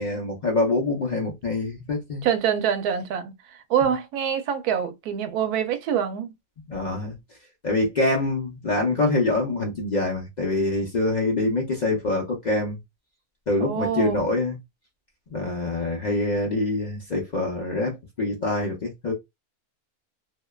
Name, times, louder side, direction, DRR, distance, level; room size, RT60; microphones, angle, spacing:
voice 1, 0.0-2.3 6.7-7.2 7.6-12.8 13.5-14.6 15.3-19.1, left 2 dB, 65° left, 0.4 m, -25 dB
voice 2, 2.2-6.3 13.6-14.3, right 8 dB, 80° right, 1.1 m, -25 dB
2.7 x 2.1 x 2.2 m
omnidirectional pair, 1.6 m